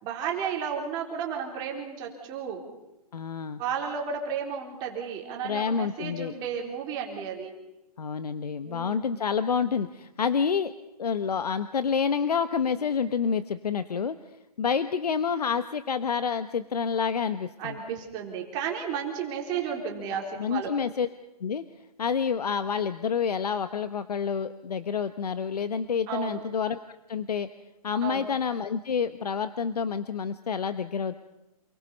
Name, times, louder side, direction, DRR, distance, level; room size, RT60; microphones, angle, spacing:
voice 1, 0.0-2.7 3.6-7.5 8.6-9.2 17.6-20.7 26.1-26.4 28.0-28.3, right 7 dB, 20° right, 0 dB, 3.9 m, -33 dB
voice 2, 3.1-3.6 5.4-6.3 8.0-10.7 11.0-14.1 14.6-17.7 20.4-21.1 21.4-21.6 22.0-26.8 27.1-27.5 27.8-31.2, left 6 dB, 80° left, 12 dB, 1.3 m, -28 dB
28.5 x 21.5 x 5.4 m, 0.97 s
hypercardioid pair, 160°, 20 cm